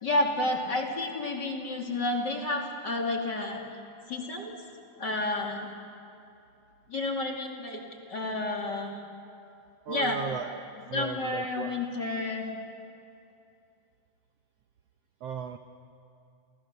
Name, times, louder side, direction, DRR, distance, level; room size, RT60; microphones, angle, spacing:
voice 1, 0.0-3.6 4.1-4.6 5.0-5.7 6.9-7.8 8.1-9.0 9.9-10.2 10.9-12.5, left 2 dB, 35° left, 1 dB, 2.6 m, -30 dB
voice 2, 9.9-10.6 10.9-11.7 15.2-15.6, right 7 dB, 70° right, 7 dB, 1.5 m, -36 dB
29.5 x 29.0 x 6.7 m, 2.6 s
omnidirectional pair, 4.0 m